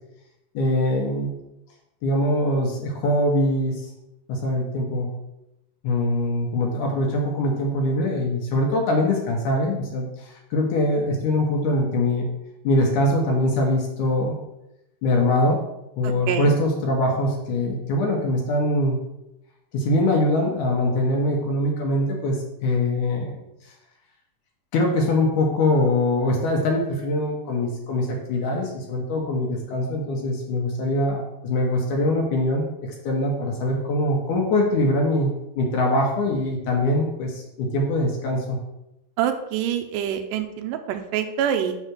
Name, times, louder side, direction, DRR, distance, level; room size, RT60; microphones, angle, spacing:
voice 1, 0.5-1.3 2.0-3.9 4.3-5.1 5.8-12.3 12.6-14.4 15.0-15.6 16.0-19.0 19.7-23.4 24.7-38.6, left 1 dB, 70° left, 0 dB, 2.2 m, -23 dB
voice 2, 16.0-16.5 39.2-41.8, right 9 dB, 80° right, 6 dB, 2.0 m, -26 dB
5.6 x 4.1 x 6.1 m, 0.88 s
omnidirectional pair, 4.2 m